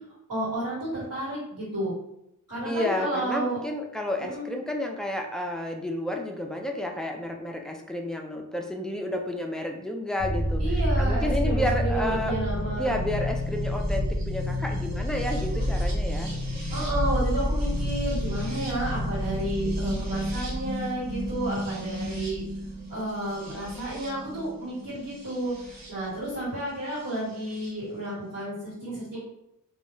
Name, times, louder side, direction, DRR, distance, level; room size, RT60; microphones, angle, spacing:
voice 1, 0.3-1.9 2.5-3.6 4.2-4.5 10.6-12.9 16.7-22.4 22.9-29.2, right 1 dB, 75° right, -10 dB, 1.3 m, -31 dB
voice 2, 2.6-10.6 11.0-12.3 12.8-16.3, left 1 dB, ahead, 2 dB, 0.3 m, -31 dB
sound 1, 10.2-25.9 27.1-27.7, equal, 55° right, 0.8 m, -29 dB
2.2 x 2.0 x 3.0 m, 0.81 s
wide cardioid pair, 70°, 33 cm